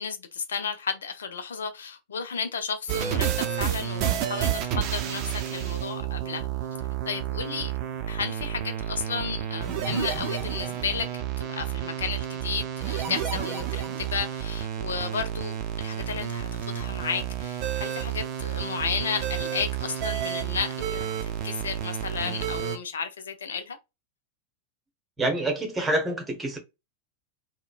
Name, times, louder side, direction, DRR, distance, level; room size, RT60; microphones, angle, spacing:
voice 1, 0.0-6.5 7.1-7.7 8.1-11.1 11.4-23.8, left 6 dB, 65° left, 0.4 m, -33 dB
sound 1, 2.9-22.8, right 10 dB, 40° right, 0.5 m, -30 dB
voice 2, 25.2-26.6, right 1 dB, 15° right, 1.0 m, -27 dB
3.7 x 2.1 x 2.3 m
figure-of-eight pair, 90°, 0 cm